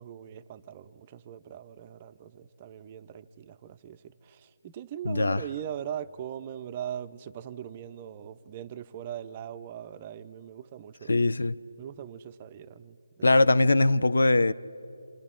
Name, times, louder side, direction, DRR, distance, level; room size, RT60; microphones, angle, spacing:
voice 1, 0.0-11.2 11.8-13.5, right 10 dB, 25° right, 0.5 m, -41 dB
voice 2, 5.1-5.4 11.1-11.5 13.2-14.5, left 2 dB, 75° left, 0.5 m, -21 dB
27.5 x 27.0 x 3.7 m
figure-of-eight pair, 160°, 0 cm